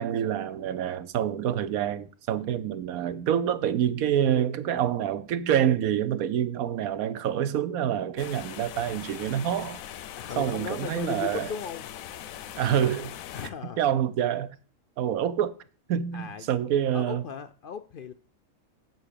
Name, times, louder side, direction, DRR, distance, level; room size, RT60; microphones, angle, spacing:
voice 1, 0.0-9.8 10.4-11.5 12.6-13.1 13.8-14.6 15.0-15.5 15.9-17.2, right 10 dB, 90° right, 1.2 m, -27 dB
sound 1, 8.2-13.5, left 11 dB, 75° left, 1.0 m, -41 dB
voice 2, 10.2-11.9 13.3-13.8 16.1-16.5 16.9-18.1, left 7 dB, 60° left, 0.5 m, -37 dB
8.1 x 5.7 x 6.7 m
omnidirectional pair, 1.5 m